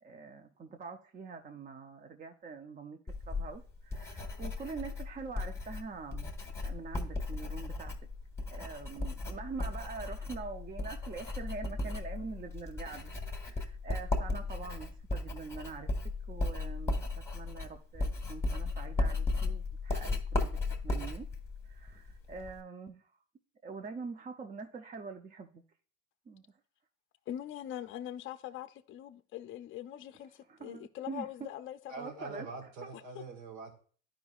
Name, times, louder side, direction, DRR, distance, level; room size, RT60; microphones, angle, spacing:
voice 1, 0.0-6.3 6.6-8.0 8.5-13.1 13.5-21.3 21.6-23.1 23.6-25.6 26.3-26.4 30.5-31.5 32.0-32.5 32.8-32.9, right 4 dB, 25° right, 0.5 m, -44 dB
Writing, 3.1-22.6, left 2 dB, 10° left, 1.3 m, -36 dB
voice 2, 27.3-32.2 32.9-33.2, left 11 dB, 35° left, 0.5 m, -43 dB
voice 3, 31.9-33.8, right 3 dB, 80° right, 1.7 m, -44 dB
10.5 x 5.0 x 2.3 m
supercardioid pair, 95°, 34 cm